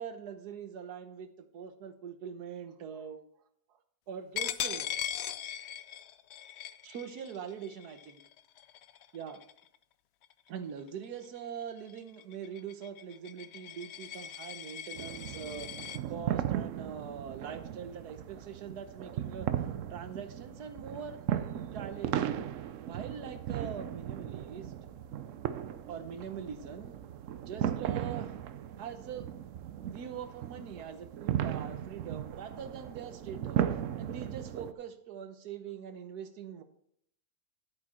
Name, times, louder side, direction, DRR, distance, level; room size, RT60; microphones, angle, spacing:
voice 1, 0.0-3.2 3.7-3.8 4.1-4.9 6.8-8.2 9.1-9.4 10.5-21.2 21.7-22.4 22.8-24.7 25.9-27.0 27.4-28.4 28.8-29.3 29.8-33.6 34.0-36.6, right 7 dB, 80° right, 9 dB, 1.5 m, -43 dB
Coin (dropping), 4.4-9.8 10.2-10.5 10.9-16.0, left 10 dB, 70° left, 0.6 m, -40 dB
sound 1, 15.0-34.7, right 10 dB, 65° right, 0.9 m, -36 dB
11.0 x 8.4 x 4.2 m, 0.67 s
omnidirectional pair, 1.6 m